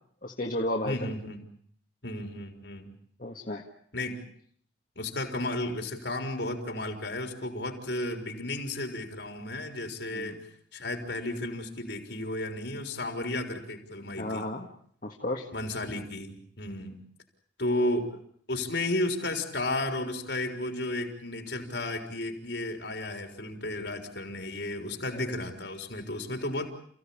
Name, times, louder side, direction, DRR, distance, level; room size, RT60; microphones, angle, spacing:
voice 1, 0.2-1.0 3.2-3.6 10.1-10.4 14.2-14.7 15.0-15.5, left 1 dB, 45° left, 0 dB, 1.8 m, -32 dB
voice 2, 0.8-1.4 2.0-2.9 3.9-4.2 5.0-10.4 10.7-14.5 15.5-17.0 17.6-18.2 18.5-26.7, left 1 dB, 65° left, 4 dB, 3.9 m, -33 dB
29.5 x 16.5 x 8.6 m, 0.63 s
head